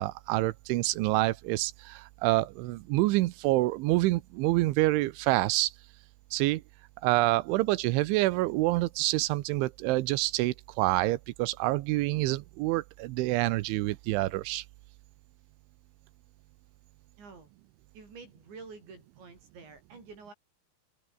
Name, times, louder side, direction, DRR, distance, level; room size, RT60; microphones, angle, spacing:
voice 1, 0.0-5.7 6.3-6.6 7.0-14.6, right 19 dB, 85° right, 3.3 m, -27 dB
voice 2, 17.2-17.5 17.9-20.3, right 4 dB, 70° right, 10.5 m, -48 dB
omnidirectional pair, 5.3 m